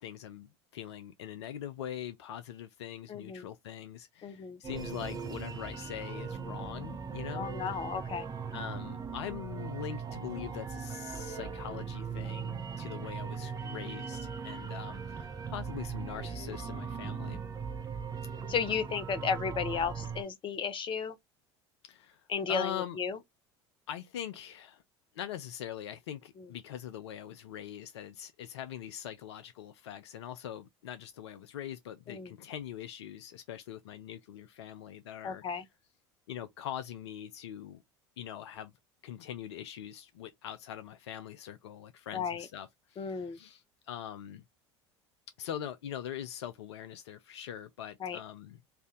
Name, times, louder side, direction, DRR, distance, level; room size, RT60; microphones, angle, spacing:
voice 1, 0.0-7.5 8.5-17.4 21.8-23.0 23.9-24.8 25.1-35.4 36.3-37.8 38.2-38.7 39.0-44.4 45.4-48.6, left 10 dB, 70° left, 0.5 m, -42 dB
voice 2, 3.1-3.4 4.2-4.6 7.3-8.2 18.5-21.2 22.3-23.2 32.1-32.3 35.2-35.6 42.1-42.5 43.0-43.4 48.0-48.2, left 6 dB, 35° left, 0.9 m, -34 dB
sound 1, 4.6-20.2, right 6 dB, 25° right, 0.9 m, -39 dB
3.3 x 2.6 x 3.7 m
figure-of-eight pair, 70°, 15 cm